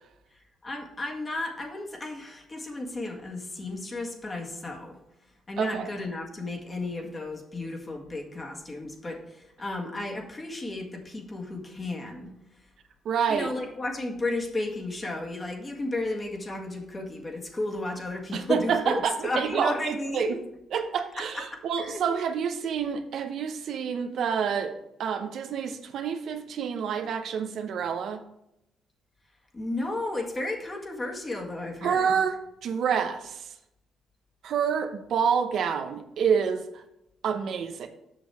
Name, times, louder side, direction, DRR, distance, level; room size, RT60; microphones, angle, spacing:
voice 1, 0.3-5.0 5.5-12.3 13.3-20.4 21.2-21.4 21.8-22.0 29.5-32.2, left 2 dB, 25° left, 1 dB, 1.8 m, -33 dB
voice 2, 5.6-5.9 13.0-13.5 18.3-20.3 20.7-28.2 31.8-33.5 34.4-36.6 37.2-37.9, right 7 dB, 70° right, 6 dB, 0.8 m, -28 dB
7.5 x 6.2 x 4.8 m, 0.84 s
cardioid pair, 90°, 0 cm